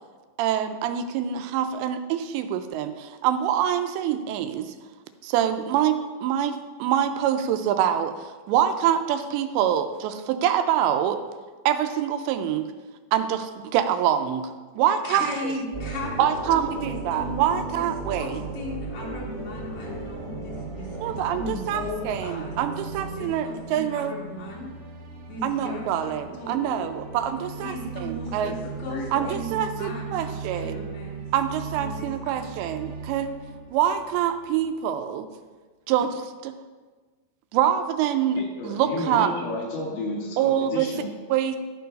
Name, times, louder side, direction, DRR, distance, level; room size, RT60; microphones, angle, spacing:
voice 1, 0.4-4.7 5.2-8.2 8.5-11.2 11.7-12.6 13.1-14.4 14.8-15.5 16.2-18.4 21.0-24.1 25.4-27.7 28.0-28.5 29.1-30.8 31.3-33.3 33.7-35.3 35.9-36.5 37.5-39.3 40.4-40.9 41.3-41.6, right 10 dB, 90° right, 8 dB, 2.8 m, -25 dB
voice 2, 15.0-16.1 16.4-22.5 23.0-24.7 25.3-26.6 27.6-31.1 31.8-32.5, left 2 dB, 55° left, -5 dB, 0.7 m, -37 dB
sound 1, 15.7-23.8, right 2 dB, 25° right, 1.0 m, -36 dB
sound 2, 18.7-34.8, right 5 dB, 70° right, 2.3 m, -39 dB
voice 3, 28.3-29.3 38.4-41.1, left 1 dB, 85° left, -3 dB, 4.5 m, -32 dB
12.0 x 4.6 x 5.3 m, 1.3 s
omnidirectional pair, 5.0 m